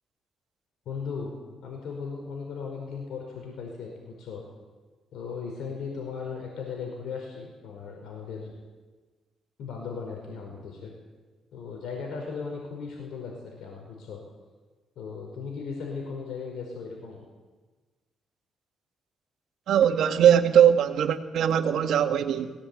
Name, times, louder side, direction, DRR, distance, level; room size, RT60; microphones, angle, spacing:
voice 1, 0.8-1.3 1.6-4.4 5.1-8.5 9.6-10.9 11.5-14.2 15.0-17.2, left 5 dB, 75° left, 0 dB, 5.0 m, -37 dB
voice 2, 19.7-22.5, right 9 dB, 75° right, 7 dB, 1.7 m, -21 dB
21.5 x 17.5 x 8.8 m, 1.3 s
cardioid pair, 90°, 0 cm